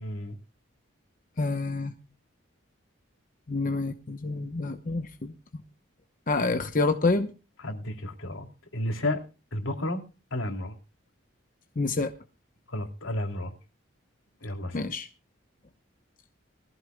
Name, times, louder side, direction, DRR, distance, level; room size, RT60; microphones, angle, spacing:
voice 1, 0.0-0.4 7.6-8.5 8.7-9.2 9.5-10.0 10.3-10.7 12.7-13.5 14.4-14.8, left 1 dB, 80° left, 4 dB, 2.8 m, -32 dB
voice 2, 1.4-1.9 3.5-5.3 6.3-7.3 11.8-12.1 14.7-15.1, left 3 dB, 40° left, 7 dB, 0.8 m, -27 dB
21.5 x 15.0 x 2.2 m, 0.33 s
head